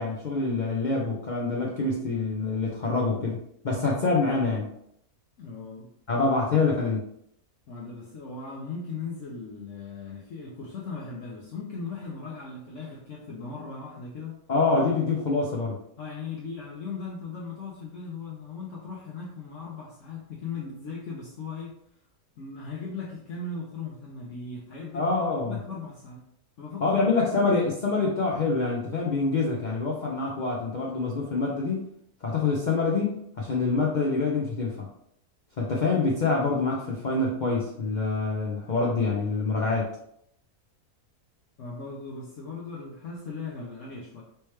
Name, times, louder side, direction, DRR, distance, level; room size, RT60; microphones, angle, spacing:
voice 1, 0.0-4.7 6.1-7.1 14.5-15.8 24.9-25.6 26.8-31.9 32.2-34.9 35.6-39.9, left 3 dB, 85° left, -2 dB, 0.4 m, -26 dB
voice 2, 5.4-5.9 7.7-14.4 14.7-15.0 16.0-21.8 22.4-26.2 26.6-27.1 41.6-44.2, left 4 dB, 65° left, -3 dB, 0.9 m, -38 dB
3.3 x 3.1 x 3.1 m, 0.72 s
omnidirectional pair, 1.6 m